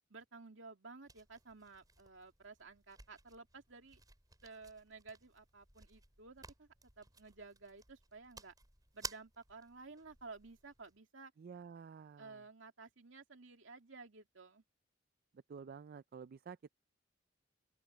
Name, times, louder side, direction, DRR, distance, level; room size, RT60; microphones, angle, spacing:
voice 1, 0.1-4.0 4.4-6.7 7.0-8.5 8.9-11.3 12.2-14.6, right 4 dB, 70° right, 2.7 m, -54 dB
sound 1, 1.0-11.0, right 4 dB, 20° right, 4.7 m, -55 dB
voice 2, 11.4-12.4 15.5-16.7, right 6 dB, 50° right, 0.4 m, -51 dB
open air
head